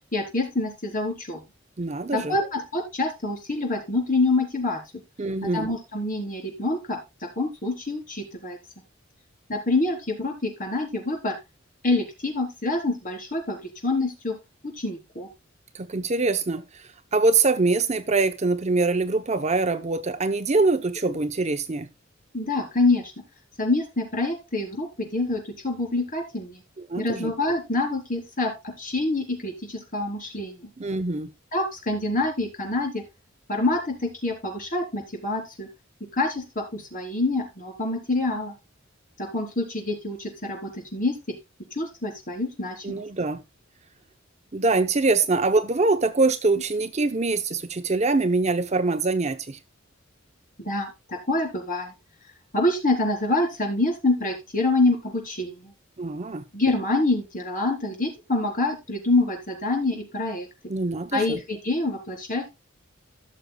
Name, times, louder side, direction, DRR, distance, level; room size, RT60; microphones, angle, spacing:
voice 1, 0.1-1.4 2.1-4.8 5.4-7.0 7.4-8.6 9.5-11.4 11.8-13.6 13.8-14.3 14.6-15.3 22.3-23.0 23.6-26.6 27.0-30.5 31.5-33.0 33.5-35.7 36.1-38.5 39.2-41.2 41.8-43.0 50.6-51.9 52.5-55.6 56.5-60.5 61.1-62.4, left 2 dB, 45° left, 3.9 m, -26 dB
voice 2, 1.8-2.3 5.2-5.7 15.7-16.8 17.1-21.9 26.8-27.3 30.8-31.3 42.8-43.4 44.5-49.6 56.0-56.4 60.7-61.4, right 3 dB, 35° right, 0.7 m, -24 dB
17.0 x 6.5 x 2.2 m
head